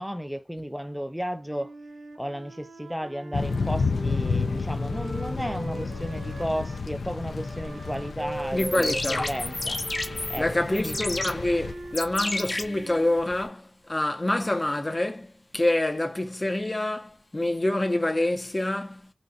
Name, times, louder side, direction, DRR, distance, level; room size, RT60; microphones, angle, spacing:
voice 1, 0.0-1.7 2.2-9.8 10.3-11.0, equal, ahead, 0.5 m, -33 dB
Wind instrument woodwind instrument, 1.4-6.9 7.3-13.2, right 2 dB, 90° right, 0.8 m, -41 dB
Thunder / Rain, 3.3-11.7, left 4 dB, 85° left, 0.4 m, -31 dB
sound 1, 8.4-13.4, left 2 dB, 50° left, 1.2 m, -32 dB
voice 2, 8.5-9.3 10.4-19.1, left 1 dB, 30° left, 0.8 m, -27 dB
4.0 x 2.4 x 2.3 m
wide cardioid pair, 80°, 0 cm